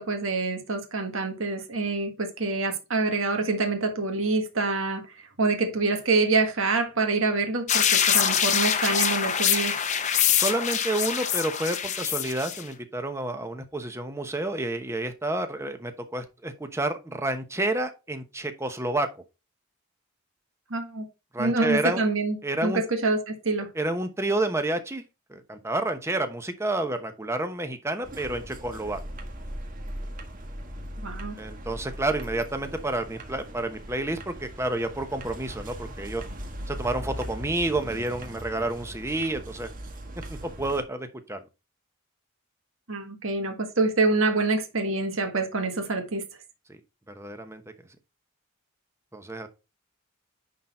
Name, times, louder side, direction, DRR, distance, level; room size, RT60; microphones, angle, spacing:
voice 1, 0.0-9.8 20.7-21.0 21.4-23.7 31.0-31.4 42.9-46.2, right 3 dB, 70° right, 1.6 m, -26 dB
sound 1, 7.7-12.6, left 8 dB, 35° left, 0.8 m, -24 dB
voice 2, 10.3-19.1 21.3-22.0 22.4-22.8 23.7-25.0 25.3-29.0 31.4-36.2 36.7-39.7 40.3-41.4 46.7-46.8 47.2-47.6 49.1-49.5, right 2 dB, 15° right, 1.0 m, -29 dB
sound 2, 28.0-40.8, equal, 40° right, 1.5 m, -39 dB
10.0 x 4.0 x 4.3 m
head